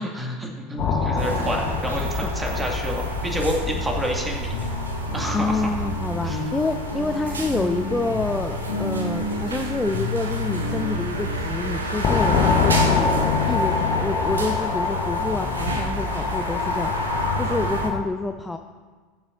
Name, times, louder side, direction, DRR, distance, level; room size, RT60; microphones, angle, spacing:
voice 1, 0.0-4.5 5.1-5.8 6.2-6.4, equal, 10° right, 0 dB, 2.1 m, -28 dB
sound 1, 0.8-18.0, left 5 dB, 35° left, 1.1 m, -27 dB
sound 2, 1.2-17.9, right 2 dB, 80° right, 0.8 m, -30 dB
sound 3, 4.5-11.3, left 3 dB, 70° left, 1.8 m, -32 dB
voice 2, 5.3-13.1 13.5-18.6, left 3 dB, 10° left, 6 dB, 0.5 m, -28 dB
20.0 x 7.1 x 2.6 m, 1.4 s
figure-of-eight pair, 80°, 0 cm